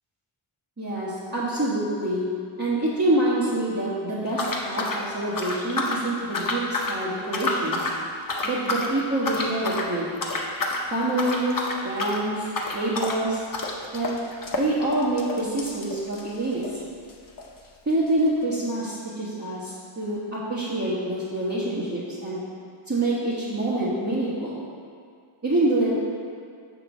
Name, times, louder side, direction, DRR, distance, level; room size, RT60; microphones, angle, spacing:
voice 1, 0.8-2.2 2.6-7.9 8.4-10.1 10.9-12.5 12.7-13.4 13.9-14.2 14.5-16.8 17.8-22.4 22.9-24.6 25.4-25.9, right 1 dB, 30° right, -12 dB, 1.5 m, -26 dB
sound 1, 4.3-6.0 6.3-7.0 7.3-8.0 8.3-8.9 9.2-9.9 10.2-10.8 11.1-16.8 17.1-17.2 17.4-17.5 18.1-18.2, left 2 dB, 40° left, 0.8 m, -29 dB
6.4 x 4.0 x 6.2 m, 2.2 s
wide cardioid pair, 90°, 50 cm